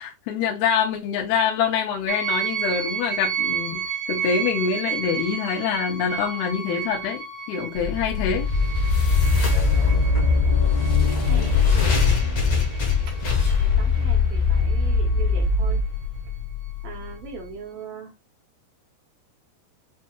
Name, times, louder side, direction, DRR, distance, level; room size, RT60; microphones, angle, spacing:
voice 1, 0.0-7.2 7.5-8.5, left 7 dB, 80° left, 2.7 m, -25 dB
sound 1, 2.1-14.0 14.6-15.4, right 7 dB, 50° right, 1.3 m, -32 dB
sound 2, 7.8-16.9, left 4 dB, 60° left, 1.9 m, -21 dB
voice 2, 9.7-10.1 11.2-12.6 13.1-13.2 13.6-15.8 16.8-18.1, right 6 dB, 75° right, 2.2 m, -40 dB
6.4 x 2.7 x 2.3 m
omnidirectional pair, 4.6 m